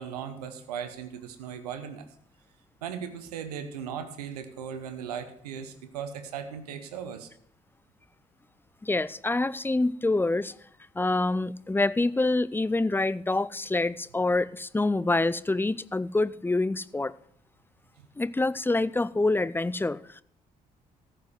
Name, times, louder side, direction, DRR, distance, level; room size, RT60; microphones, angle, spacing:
voice 1, 0.0-2.1 2.8-7.3, right 8 dB, 80° right, 1.0 m, -37 dB
voice 2, 8.8-10.5 11.0-17.1 18.2-20.2, left 2 dB, 10° left, 0.5 m, -26 dB
14.5 x 5.0 x 7.7 m
figure-of-eight pair, 45°, 20 cm